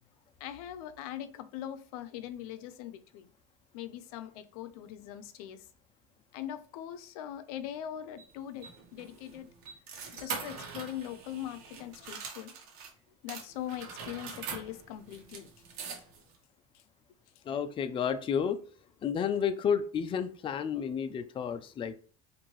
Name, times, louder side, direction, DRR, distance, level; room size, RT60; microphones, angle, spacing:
voice 1, 0.4-3.3 3.7-5.7 6.3-9.5 10.1-12.5 13.2-15.5, left 11 dB, 85° left, 0.5 m, -41 dB
sound 1, 8.2-12.9 13.3-16.4, right 5 dB, 85° right, 1.1 m, -43 dB
voice 2, 17.4-18.6 19.0-21.9, left 7 dB, 30° left, 0.4 m, -31 dB
4.5 x 2.6 x 3.0 m
supercardioid pair, 105°, 18 cm